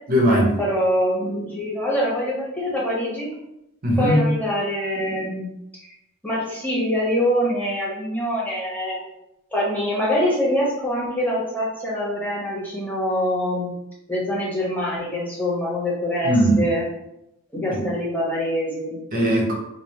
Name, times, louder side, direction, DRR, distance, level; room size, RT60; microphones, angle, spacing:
voice 1, 0.1-0.5 3.8-4.3 16.2-16.7 17.7-17.8 19.1-19.5, equal, 40° right, -2 dB, 0.7 m, -19 dB
voice 2, 0.6-3.3 4.0-5.5 6.2-9.0 9.5-13.7 14.1-16.8 17.5-19.0, equal, 10° left, -5 dB, 1.0 m, -24 dB
3.3 x 2.1 x 4.1 m, 0.87 s
head